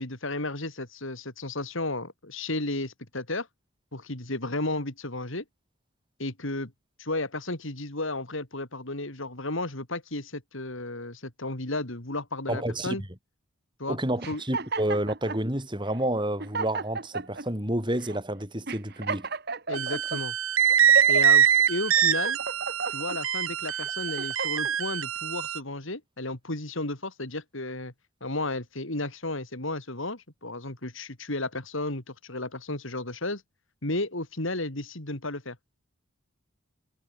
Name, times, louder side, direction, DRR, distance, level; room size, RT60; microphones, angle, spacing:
voice 1, 0.0-3.5 3.9-5.4 6.2-6.7 7.0-13.0 13.8-14.0 14.3-14.4 19.7-20.3 21.1-22.4 22.9-27.9 28.2-33.4 33.8-35.6, left 2 dB, 65° left, 3.3 m, -33 dB
voice 2, 12.5-13.0 13.9-19.3, right 1 dB, 20° right, 5.6 m, -29 dB
sound 1, 14.2-15.4 16.0-16.1 16.4-17.5 18.0-18.2 18.7-20.2 20.7-21.4 21.9-23.2 23.7-24.7, right 4 dB, 50° right, 1.9 m, -34 dB
sound 2, 19.7-25.6, right 9 dB, 75° right, 1.6 m, -24 dB
head